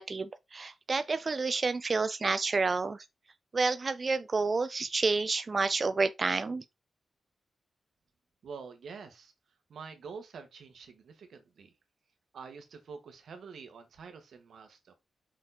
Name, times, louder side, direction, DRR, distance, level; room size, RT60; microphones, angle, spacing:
voice 1, 0.0-3.0 3.5-6.6, right 4 dB, 30° right, 0.4 m, -29 dB
voice 2, 8.4-9.3 9.7-11.7 12.3-14.9, right 5 dB, 80° right, 1.6 m, -47 dB
6.0 x 4.5 x 4.2 m
wide cardioid pair, 165°, 0 cm